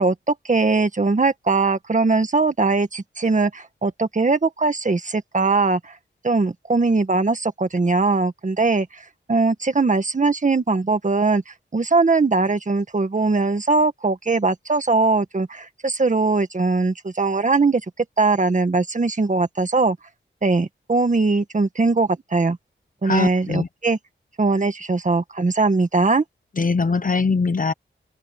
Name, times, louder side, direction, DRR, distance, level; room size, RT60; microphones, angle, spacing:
voice 1, 0.0-5.9 6.2-8.9 9.3-17.8 18.2-20.0 20.4-22.6 23.0-24.0 24.4-26.2, right 3 dB, 40° right, 1.8 m, -20 dB
voice 2, 23.0-23.7 26.5-27.7, left 4 dB, 40° left, 1.0 m, -21 dB
open air
wide cardioid pair, 120°, 20 cm